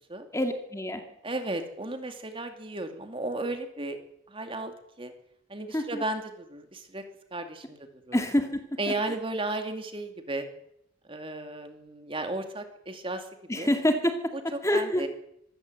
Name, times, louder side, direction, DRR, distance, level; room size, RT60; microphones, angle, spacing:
voice 1, 0.3-1.0 5.7-6.0 8.1-8.8 13.5-14.3 14.6-15.0, left 1 dB, 15° left, 6 dB, 2.2 m, -26 dB
voice 2, 1.2-4.0 4.3-5.1 5.5-7.0 7.3-8.2 8.8-10.5 11.1-13.3 13.6-13.7 14.3-15.1, right 2 dB, 25° right, 6 dB, 2.6 m, -34 dB
24.5 x 15.5 x 8.1 m, 0.76 s
head